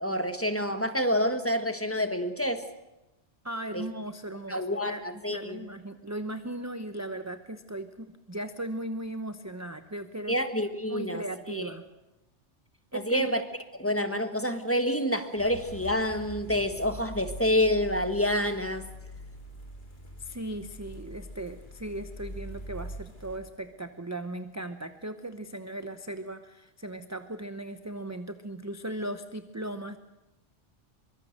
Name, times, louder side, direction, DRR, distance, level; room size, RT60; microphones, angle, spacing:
voice 1, 0.0-2.6 3.7-3.8 4.5-5.6 10.3-11.6 12.9-13.4 13.8-18.9, left 1 dB, 10° left, 8 dB, 1.5 m, -28 dB
voice 2, 3.4-5.0 5.3-10.4 10.9-11.8 12.9-13.3 20.2-30.0, right 1 dB, 15° right, 9 dB, 0.9 m, -37 dB
sound 1, 15.4-23.4, equal, 40° left, 3.6 m, -43 dB
24.0 x 23.5 x 6.6 m, 0.98 s
omnidirectional pair, 1.2 m